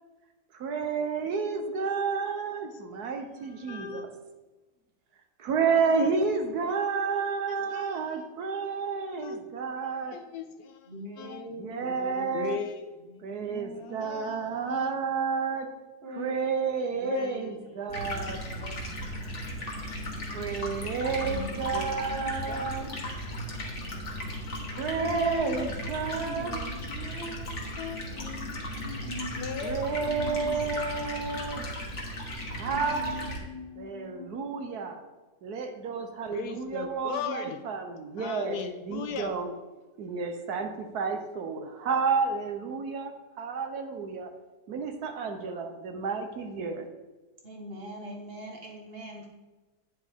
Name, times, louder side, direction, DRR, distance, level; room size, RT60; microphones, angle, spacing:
voice 1, 0.5-4.1 5.4-10.2 11.6-12.6 13.2-15.7 16.2-18.4 20.3-22.9 24.7-26.6 29.6-31.6 32.5-33.3 33.8-35.0 35.4-38.6 38.8-39.5 40.0-44.3 44.7-46.9, right 5 dB, 70° right, 6 dB, 1.3 m, -31 dB
voice 2, 3.4-4.1 7.5-8.2 9.1-9.4 10.1-10.9 11.2-11.5 12.3-12.9 13.7-14.9 17.0-17.6 17.8-18.0 18.4-18.9 21.7-22.9 25.0-25.8 27.2-27.4 27.8-28.0 29.4-30.4 36.3-37.6 38.2-39.4, left 7 dB, 75° left, 8 dB, 1.1 m, -38 dB
voice 3, 10.9-12.6 13.0-14.8 16.0-16.5 16.9-19.1 21.0-21.5 22.1-22.9 25.0-25.7 26.0-27.5 28.1-29.7 30.0-30.7 32.7-34.3 47.4-49.3, left 1 dB, 35° right, 1 dB, 1.4 m, -43 dB
Stream, 17.9-33.4, equal, 45° left, 1.7 m, -36 dB
9.6 x 7.3 x 3.5 m, 1.2 s
omnidirectional pair, 1.8 m